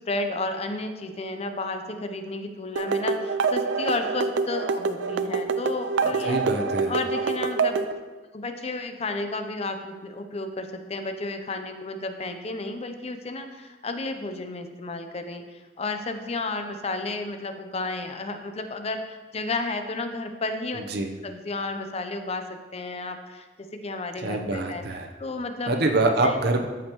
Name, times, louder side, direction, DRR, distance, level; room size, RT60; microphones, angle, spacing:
voice 1, 0.1-6.4 6.9-7.8 8.3-20.8 21.2-23.4 23.7-24.8 25.2-25.9 26.2-26.4, left 2 dB, 35° left, 6 dB, 0.6 m, -32 dB
sound 1, 2.8-7.9, right 4 dB, 80° right, 0.4 m, -26 dB
voice 2, 6.0-6.9 20.7-21.1 24.2-25.1 25.7-26.7, right 2 dB, 60° right, 4 dB, 0.8 m, -25 dB
13.5 x 5.2 x 3.0 m, 1.3 s
head